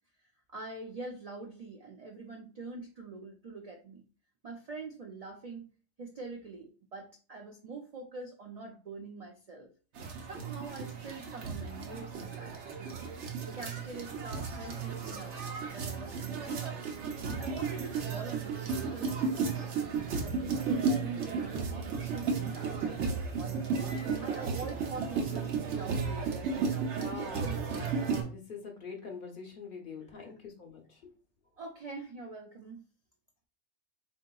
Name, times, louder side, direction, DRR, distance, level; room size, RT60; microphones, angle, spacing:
voice 1, 0.5-4.0 4.4-5.7 6.0-9.7 10.3-12.9 13.5-15.3 15.7-16.9 17.4-19.8 20.2-23.0 23.4-26.9 27.4-27.7 30.0-30.1 31.6-32.8, right 3 dB, 60° right, 2 dB, 0.4 m, -44 dB
sound 1, 9.9-28.2, right 5 dB, 90° right, 1.0 m, -34 dB
voice 2, 26.8-31.1, left 4 dB, 55° left, 2 dB, 0.9 m, -45 dB
3.7 x 2.7 x 2.3 m, 0.37 s
omnidirectional pair, 1.1 m